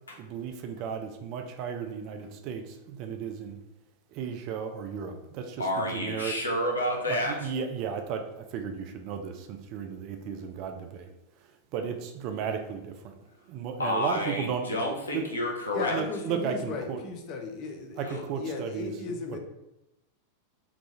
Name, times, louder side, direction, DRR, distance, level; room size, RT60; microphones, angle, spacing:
voice 1, 0.2-3.6 4.1-6.4 7.1-11.1 11.7-13.1 13.5-14.7 15.1-15.2 15.9-17.0 18.0-19.4, right 7 dB, 40° right, 5 dB, 0.4 m, -34 dB
voice 2, 5.6-7.5 13.8-16.0 18.0-18.2, left 1 dB, 75° left, 0 dB, 0.7 m, -30 dB
voice 3, 15.7-19.4, left 3 dB, 40° left, 4 dB, 0.6 m, -36 dB
3.9 x 2.3 x 2.9 m, 0.91 s
figure-of-eight pair, 90°, 0 cm